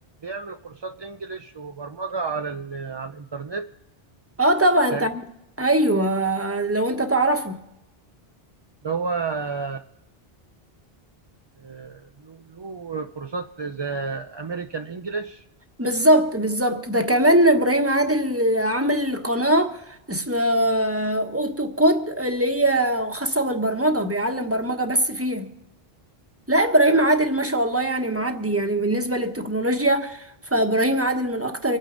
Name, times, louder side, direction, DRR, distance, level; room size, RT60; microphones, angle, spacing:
voice 1, 0.2-3.7 4.9-5.0 8.8-9.9 11.6-15.4, right 4 dB, 35° right, 0.4 m, -31 dB
voice 2, 4.4-5.2 5.6-7.6 15.8-25.5 26.5-31.8, right 1 dB, 15° right, 1.2 m, -21 dB
25.5 x 9.1 x 3.9 m
omnidirectional pair, 1.0 m